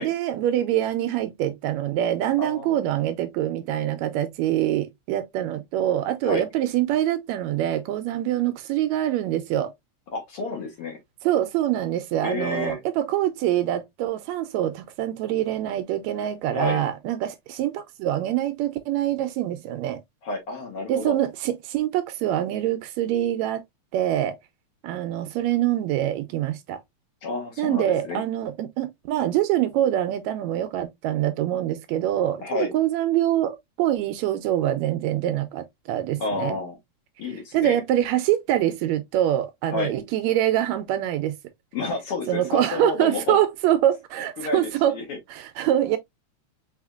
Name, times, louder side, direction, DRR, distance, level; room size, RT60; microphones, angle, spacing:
voice 1, 0.0-9.7 11.2-20.0 20.9-23.6 23.9-24.4 24.8-26.8 27.6-36.6 37.5-41.4 42.3-45.0 45.3-46.0, right 12 dB, 80° right, 1.7 m, -25 dB
voice 2, 2.4-2.8 6.2-6.5 10.1-11.0 12.2-12.8 16.5-16.8 20.2-21.2 27.2-28.2 32.4-32.7 36.2-36.8 37.2-37.8 39.7-39.9 41.7-43.4 44.4-45.2, left 3 dB, 55° left, 2.2 m, -30 dB
4.9 x 3.5 x 2.3 m
omnidirectional pair, 3.3 m